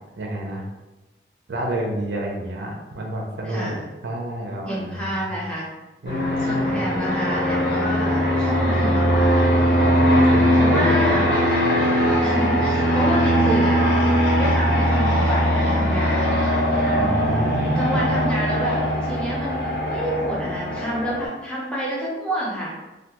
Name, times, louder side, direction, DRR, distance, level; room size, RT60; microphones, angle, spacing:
voice 1, 0.2-0.6 1.5-5.4 6.0-6.9 10.0-11.1 16.9-18.0, right 1 dB, 80° right, 0 dB, 0.5 m, -29 dB
voice 2, 3.4-3.8 4.7-5.7 6.4-9.5 10.5-11.3 12.2-13.9 14.3-16.4 17.8-22.7, equal, 5° left, -6 dB, 0.6 m, -28 dB
Fixed-wing aircraft airplane, 6.1-21.3, equal, 70° left, 0.6 m, -20 dB
2.3 x 2.2 x 2.9 m, 1.1 s
head